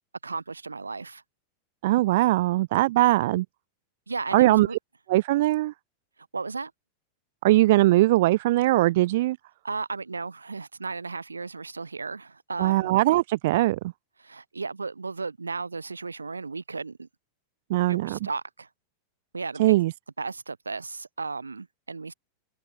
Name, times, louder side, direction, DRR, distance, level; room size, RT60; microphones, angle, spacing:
voice 1, 0.2-1.2 4.1-4.8 6.3-6.7 9.6-12.9 14.2-17.1 17.9-18.7 19.3-19.8 20.2-22.1, right 4 dB, 80° right, 7.1 m, -35 dB
voice 2, 1.8-3.4 4.3-4.7 5.1-5.7 7.4-9.4 12.6-13.8 17.7-18.2 19.6-19.9, right 17 dB, 55° right, 0.9 m, -21 dB
open air
figure-of-eight pair, 90°, 0 cm